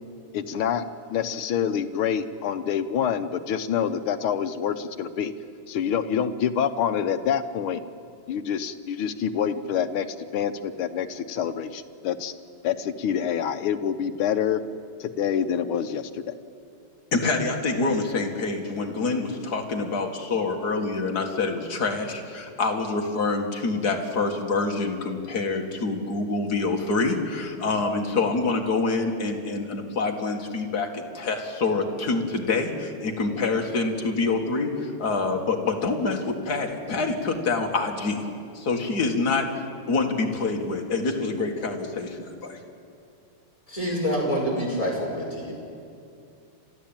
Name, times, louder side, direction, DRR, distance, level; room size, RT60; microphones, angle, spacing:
voice 1, 0.3-5.3 5.7-7.8 8.3-10.1 10.3-12.3 12.6-14.6 15.0-16.1, left 8 dB, 75° left, 9 dB, 1.8 m, -26 dB
voice 2, 17.1-38.2 38.5-42.6, left 3 dB, 45° left, 2 dB, 2.4 m, -26 dB
voice 3, 43.7-45.5, equal, 15° left, -3 dB, 5.3 m, -26 dB
30.0 x 13.0 x 8.9 m, 2.4 s
omnidirectional pair, 2.4 m